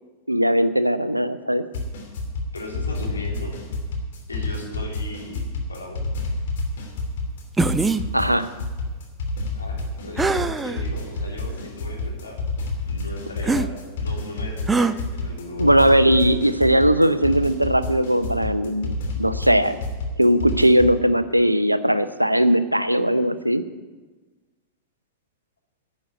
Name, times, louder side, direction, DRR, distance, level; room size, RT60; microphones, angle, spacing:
voice 1, 0.3-1.6 8.1-8.5 15.6-19.8 20.2-23.6, right 1 dB, 90° right, 13 dB, 0.7 m, -19 dB
sound 1, 1.7-21.0, left 2 dB, 55° left, 3.0 m, -29 dB
voice 2, 2.5-3.6 4.3-5.4 5.7-6.1 9.5-12.4 12.8-15.7, left 2 dB, 75° left, -2 dB, 3.6 m, -37 dB
sound 2, 7.6-8.0 10.2-10.8 11.5-11.6 13.4-13.7 14.7-14.9, right 3 dB, 10° right, 0.6 m, -22 dB
11.5 x 8.5 x 9.5 m, 1.3 s
figure-of-eight pair, 90°, 0 cm